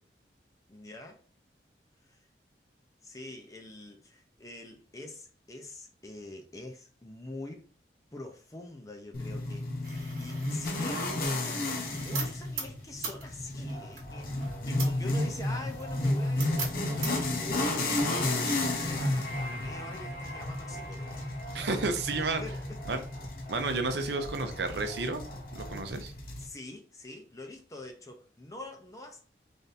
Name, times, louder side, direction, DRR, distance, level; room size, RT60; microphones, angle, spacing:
voice 1, 0.7-1.2 2.0-2.2 3.0-7.6 8.1-21.2 22.4-22.8 26.4-29.3, left 2 dB, 20° left, 0.5 m, -45 dB
sound 1, 9.1-26.5, left 2 dB, 50° left, 0.7 m, -33 dB
sound 2, 9.8-17.4, right 4 dB, 50° right, 1.1 m, -42 dB
sound 3, 13.7-25.9, equal, 80° left, 1.8 m, -46 dB
voice 2, 21.5-22.4 22.9-23.0 23.5-25.2 25.5-26.1, right 3 dB, 70° right, 0.6 m, -31 dB
3.4 x 2.6 x 4.0 m
head